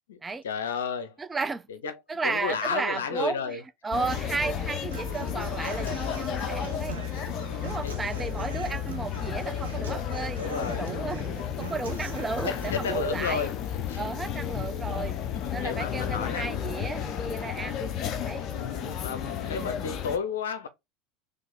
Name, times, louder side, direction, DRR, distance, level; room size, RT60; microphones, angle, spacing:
voice 1, 0.4-1.1 1.8-1.9 2.2-3.6 7.8-8.1 10.4-10.9 12.4-13.5 13.9-14.0 15.6-16.5 18.5-20.7, left 6 dB, 80° left, 0.7 m, -32 dB
voice 2, 1.2-1.7 2.1-7.0 7.6-13.5 14.0-15.2 15.5-17.9 18.2-18.4 19.4-19.7, right 4 dB, 20° right, 0.6 m, -34 dB
sound 1, 3.9-20.2, left 8 dB, 45° left, 0.7 m, -32 dB
Human voice / Acoustic guitar, 4.9-12.9, right 8 dB, 85° right, 1.0 m, -42 dB
3.6 x 3.4 x 3.9 m
hypercardioid pair, 80°, 0 cm